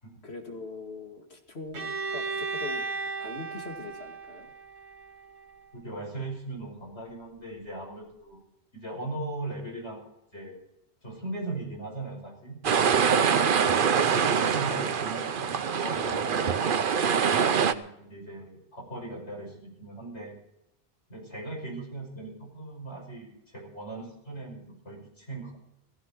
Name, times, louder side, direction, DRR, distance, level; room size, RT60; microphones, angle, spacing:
voice 1, 0.2-2.8 3.2-4.5 13.6-13.7, left 3 dB, 70° left, 3 dB, 2.6 m, -41 dB
Bowed string instrument, 1.7-5.6, right 4 dB, 75° right, 1.7 m, -35 dB
voice 2, 5.7-8.4 8.7-10.0 10.3-10.6 11.0-12.6 14.5-17.4 17.6-20.4 21.1-25.6, right 2 dB, 90° left, 0 dB, 6.3 m, -39 dB
sound 1, 12.6-17.7, right 7 dB, 55° right, 0.9 m, -24 dB
16.5 x 15.5 x 4.5 m, 0.80 s
omnidirectional pair, 1.1 m